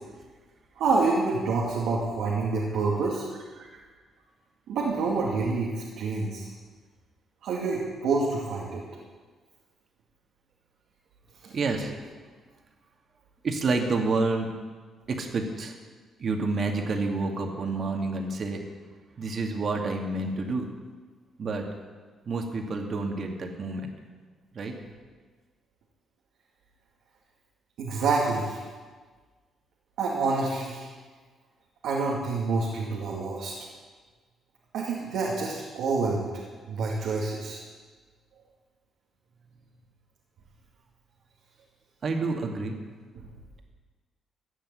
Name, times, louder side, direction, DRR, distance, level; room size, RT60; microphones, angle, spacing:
voice 1, 0.8-3.3 3.6-3.7 4.7-6.5 7.4-8.8 27.8-28.6 30.0-30.9 31.8-33.5 34.7-36.3 36.7-37.6, right 3 dB, 80° right, -4 dB, 2.3 m, -27 dB
voice 2, 11.5-11.9 13.4-14.5 15.1-15.7 16.2-18.6 19.2-20.7 21.4-21.7 22.3-23.9 24.5-24.7 42.0-42.8, right 3 dB, 50° right, 3 dB, 2.2 m, -29 dB
15.0 x 6.8 x 9.7 m, 1.5 s
cardioid pair, 90°, 0 cm